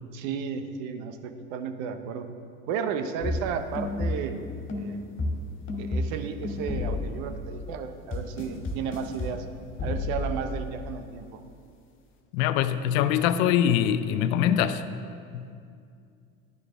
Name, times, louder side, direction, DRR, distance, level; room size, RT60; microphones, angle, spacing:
voice 1, 0.1-2.3 2.7-4.5 4.7-5.0 5.8-9.5 9.8-11.4, right 6 dB, 70° right, 8 dB, 0.9 m, -33 dB
sound 1, 3.2-4.4 4.7-7.5 8.1-9.4 9.8-10.6, left 2 dB, 30° left, 2.0 m, -31 dB
voice 2, 12.3-14.8 15.3-15.4, left 10 dB, 70° left, 12 dB, 0.7 m, -23 dB
10.5 x 9.5 x 3.4 m, 2.4 s
hypercardioid pair, 80°, 42 cm